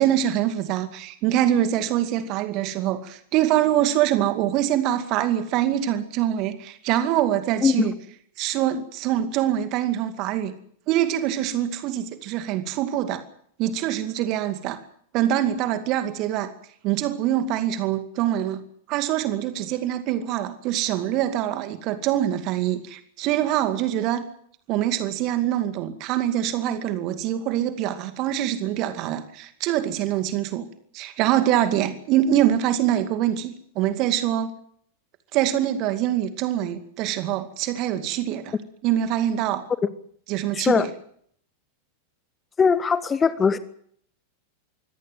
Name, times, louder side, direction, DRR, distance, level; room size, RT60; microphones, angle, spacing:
voice 1, 0.0-7.9 8.4-10.5 10.9-13.2 13.6-14.8 15.1-16.5 16.8-18.6 18.9-24.2 24.7-30.7 30.9-34.5 35.3-38.5 38.8-39.6 40.3-40.9, right 11 dB, 40° right, 10 dB, 2.3 m, -24 dB
voice 2, 40.5-40.9 42.6-43.6, left 5 dB, 20° left, 16 dB, 1.1 m, -20 dB
23.5 x 17.5 x 7.5 m, 0.65 s
figure-of-eight pair, 90°, 0 cm